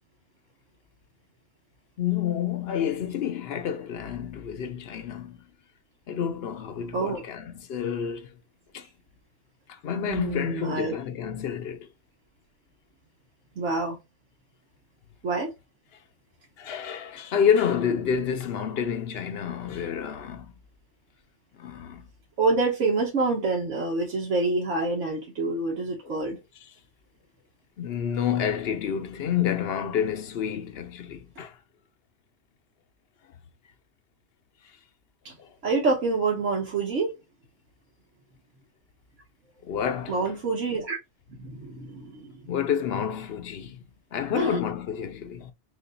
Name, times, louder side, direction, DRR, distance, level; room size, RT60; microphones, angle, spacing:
voice 1, 2.0-5.4 6.1-8.3 8.7-8.9 9.7-11.9 16.6-20.5 21.6-22.1 26.0-26.2 27.8-31.6 35.4-35.5 39.6-40.2 42.5-43.8 44.1-45.5, left 8 dB, 60° left, 0.9 m, -29 dB
voice 2, 10.0-10.9 13.6-14.0 15.2-15.5 22.4-26.4 35.2-35.4 35.6-37.1 40.1-41.0 41.4-42.5 44.3-44.6, right 3 dB, 90° right, 1.4 m, -27 dB
6.4 x 2.5 x 2.4 m
omnidirectional pair, 1.2 m